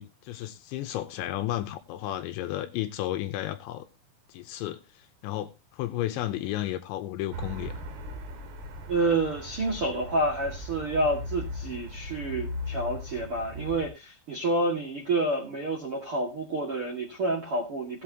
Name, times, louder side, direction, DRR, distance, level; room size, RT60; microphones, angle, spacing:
voice 1, 0.0-3.9 4.3-7.7, left 14 dB, 80° left, 2.9 m, -33 dB
sound 1, 7.3-13.9, left 1 dB, 80° right, 4.7 m, -38 dB
voice 2, 8.9-18.0, right 2 dB, 55° right, 1.6 m, -29 dB
17.0 x 8.5 x 2.9 m
omnidirectional pair, 5.7 m